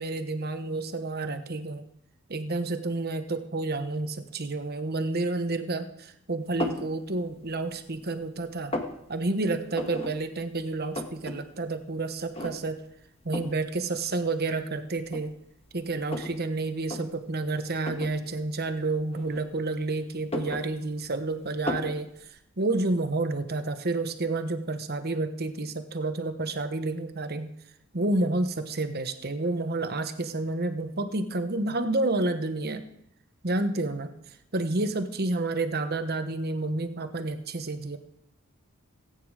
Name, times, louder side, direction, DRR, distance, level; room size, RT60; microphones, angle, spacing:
voice 1, 0.0-1.9 2.3-8.7 9.1-12.8 13.2-15.3 15.7-22.1 22.6-27.5 27.9-32.8 33.4-34.1 34.5-38.0, right 2 dB, 45° right, 9 dB, 1.1 m, -30 dB
sound 1, 6.6-6.9 7.4-8.1 8.4-9.0 9.7-10.1 10.4-10.5 10.7-11.4 11.7-11.8 12.3-12.8 13.3-13.6 14.4-14.5 15.1-16.4 16.8-17.0 17.8-18.2 19.1-19.8 20.1-21.2 21.7-22.0, left 1 dB, 25° left, 1.4 m, -34 dB
18.5 x 9.4 x 4.9 m, 0.77 s
head